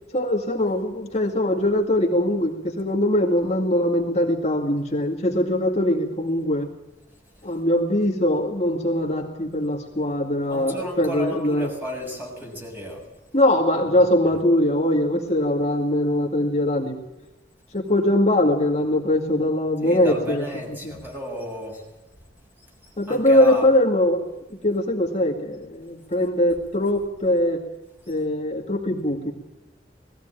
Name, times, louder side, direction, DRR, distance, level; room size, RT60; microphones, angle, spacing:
voice 1, 0.1-6.7 7.4-11.7 13.3-17.0 17.7-20.4 20.8-20.9 23.0-24.2 24.6-27.6 28.1-29.3, left 1 dB, 40° left, 1 dB, 2.2 m, -22 dB
voice 2, 10.5-13.0 13.9-14.0 19.8-21.8 23.0-23.7, equal, 10° right, 1 dB, 7.1 m, -33 dB
20.0 x 16.0 x 9.0 m, 1.0 s
head